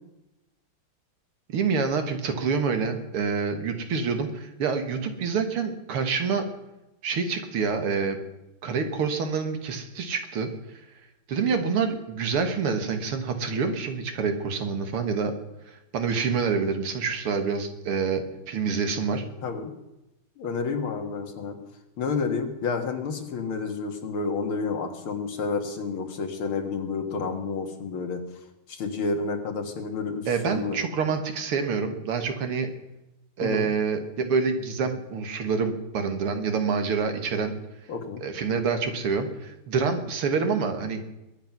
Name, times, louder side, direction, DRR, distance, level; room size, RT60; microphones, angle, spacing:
voice 1, 1.5-6.5 7.0-8.2 8.6-10.5 11.3-15.3 15.7-19.2 30.3-32.7 33.4-37.5 38.2-41.0, right 5 dB, 90° right, 7 dB, 2.6 m, -27 dB
voice 2, 20.4-21.6 22.0-28.2 28.7-30.8 33.4-33.7 37.9-38.2, left 4 dB, 75° left, 5 dB, 2.6 m, -30 dB
21.5 x 9.1 x 6.0 m, 0.95 s
omnidirectional pair, 2.3 m